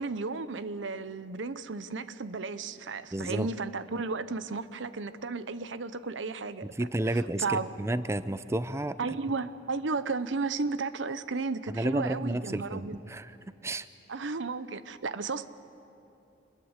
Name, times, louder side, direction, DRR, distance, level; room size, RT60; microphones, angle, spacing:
voice 1, 0.0-6.7 7.4-7.7 9.0-13.0 14.1-15.5, right 4 dB, 85° right, 14 dB, 0.8 m, -34 dB
voice 2, 3.1-3.5 6.7-9.0 11.7-13.4 13.6-13.9, right 1 dB, 15° right, 14 dB, 0.5 m, -31 dB
26.5 x 21.0 x 8.0 m, 2.9 s
head